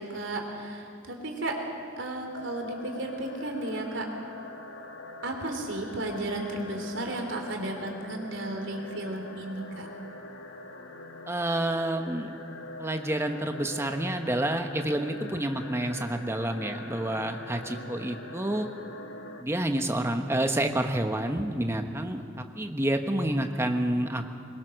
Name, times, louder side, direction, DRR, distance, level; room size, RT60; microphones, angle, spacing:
voice 1, 0.0-1.5 2.0-4.1 5.2-9.9, right 2 dB, 70° right, 2 dB, 3.2 m, -34 dB
sound 1, 2.3-19.4, left 2 dB, 90° left, 1.5 m, -43 dB
voice 2, 11.3-12.3 12.8-18.7 19.4-24.4, right 1 dB, 15° right, 5 dB, 1.1 m, -29 dB
21.5 x 21.0 x 6.5 m, 2.4 s
head